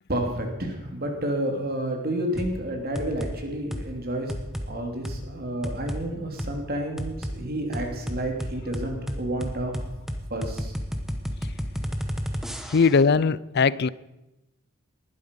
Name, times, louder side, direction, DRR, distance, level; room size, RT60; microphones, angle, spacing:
voice 1, 0.1-4.3 4.7-9.7 10.3-10.7, right 1 dB, 45° right, 2.9 m, -30 dB
sound 1, 2.4-2.6 2.9-3.3 3.7-3.9 4.3-4.7 5.0-5.2 5.6-6.0 6.4-6.5 7.0-7.4 7.7-13.0, equal, ahead, 1.1 m, -31 dB
voice 2, 12.7-13.9, left 5 dB, 50° left, 0.4 m, -20 dB
19.5 x 12.0 x 5.4 m
head